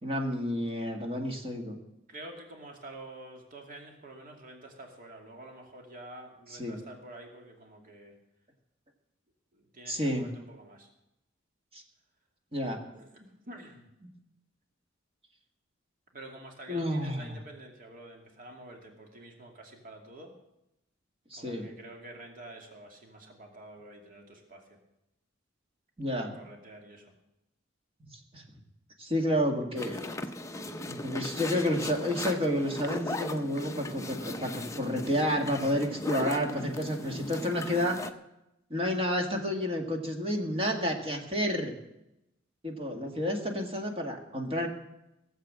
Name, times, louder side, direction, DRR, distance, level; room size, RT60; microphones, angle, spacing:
voice 1, 0.0-1.8 6.6-6.8 9.9-10.3 11.7-11.8 12.5-12.8 14.0-14.1 16.7-17.4 21.3-21.7 26.0-26.4 28.1-28.4 29.0-30.2 30.9-38.0 38.7-41.7 42.6-44.7, equal, 30° right, 2 dB, 1.9 m, -30 dB
voice 2, 2.1-8.2 9.5-10.9 12.9-13.9 16.1-20.3 21.4-24.8 26.2-27.1, right 1 dB, 45° right, 2 dB, 2.6 m, -48 dB
sound 1, 29.8-38.1, left 2 dB, 15° left, 0.7 m, -38 dB
17.5 x 7.8 x 7.6 m, 0.88 s
head